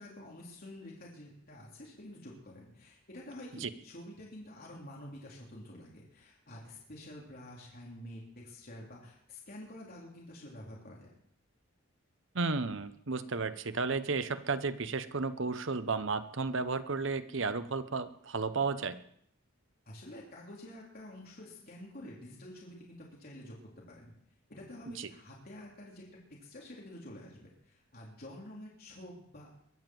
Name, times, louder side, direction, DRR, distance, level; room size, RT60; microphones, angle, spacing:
voice 1, 0.0-11.1 19.9-24.1 24.5-26.1 26.4-29.5, left 1 dB, 45° left, -3 dB, 3.5 m, -49 dB
voice 2, 12.3-19.0 25.0-25.1, right 4 dB, 65° right, 12 dB, 0.9 m, -33 dB
22.0 x 7.3 x 7.8 m, 0.69 s
head